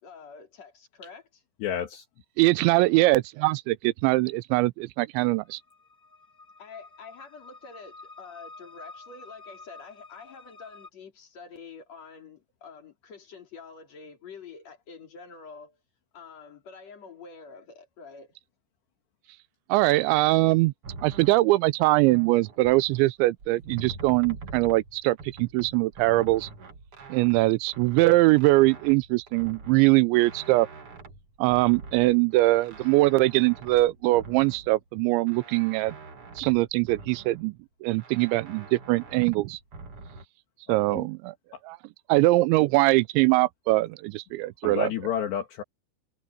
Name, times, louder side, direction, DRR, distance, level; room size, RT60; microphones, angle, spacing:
voice 1, 0.0-1.4 6.6-15.8 16.1-18.4, left 5 dB, 40° left, 4.4 m, -47 dB
voice 2, 1.6-2.1 40.9-41.1 41.5-41.6 44.6-45.6, left 9 dB, 70° left, 3.8 m, -30 dB
voice 3, 2.4-5.6 19.7-20.7 21.0-26.5 27.1-30.7 31.4-36.0 36.4-37.5 37.8-39.6 40.7-41.3 41.6-41.8 42.1-44.9, right 20 dB, 85° right, 2.9 m, -22 dB
sound 1, 5.2-10.9, left 3 dB, 5° left, 3.1 m, -49 dB
sound 2, 20.8-23.1 23.4-34.9 35.3-37.5 38.0-40.2, right 3 dB, 45° right, 2.1 m, -45 dB
omnidirectional pair, 5.3 m